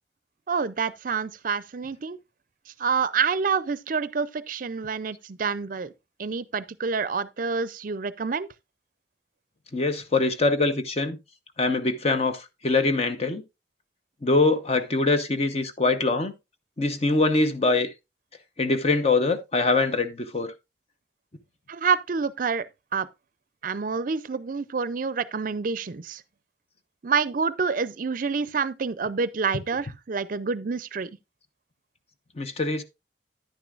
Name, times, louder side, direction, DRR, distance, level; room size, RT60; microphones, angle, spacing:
voice 1, 0.5-2.2 2.8-5.9 6.2-8.5 21.7-22.7 22.9-23.1 23.6-26.2 27.0-31.1, right 5 dB, 50° right, 0.5 m, -27 dB
voice 2, 9.7-11.2 11.6-13.4 14.2-16.3 16.8-17.9 18.6-20.5 32.4-32.8, left 3 dB, 35° left, 0.8 m, -23 dB
10.0 x 9.4 x 2.4 m
head